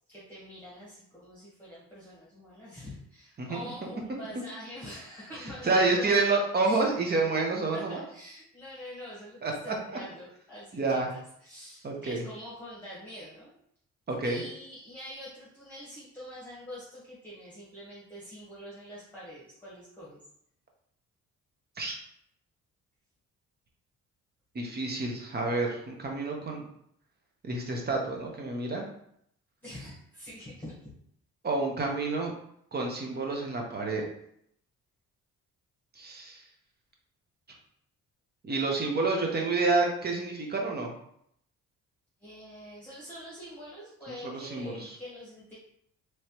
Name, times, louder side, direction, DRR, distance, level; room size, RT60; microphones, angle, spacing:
voice 1, 0.1-6.9 7.7-13.5 14.2-20.2 25.0-25.1 29.6-30.9 42.2-45.5, left 1 dB, 5° left, -8 dB, 1.3 m, -45 dB
voice 2, 5.6-8.0 9.4-9.5 10.7-11.1 11.8-12.2 14.1-14.4 21.8-22.0 24.5-26.7 27.4-28.9 31.4-32.3 32.7-34.0 36.0-36.4 38.4-41.0 44.1-45.0, right 3 dB, 35° right, 1 dB, 0.9 m, -29 dB
3.2 x 3.1 x 2.9 m, 0.71 s
cardioid pair, 90°, 30 cm